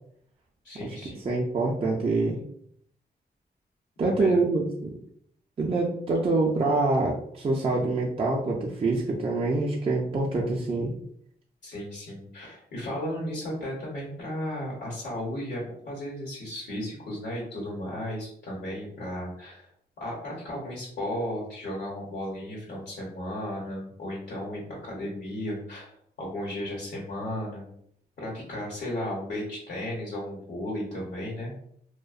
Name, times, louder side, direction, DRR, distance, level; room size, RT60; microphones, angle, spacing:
voice 1, 0.6-1.2 4.0-4.4 11.6-19.7 20.0-25.9 26.2-27.7 28.2-31.5, left 1 dB, 85° left, -6 dB, 0.9 m, -34 dB
voice 2, 1.2-2.4 4.0-4.9 5.6-10.9, right 3 dB, 35° right, -3 dB, 0.4 m, -25 dB
2.6 x 2.1 x 2.4 m, 0.67 s
wide cardioid pair, 110°, 17 cm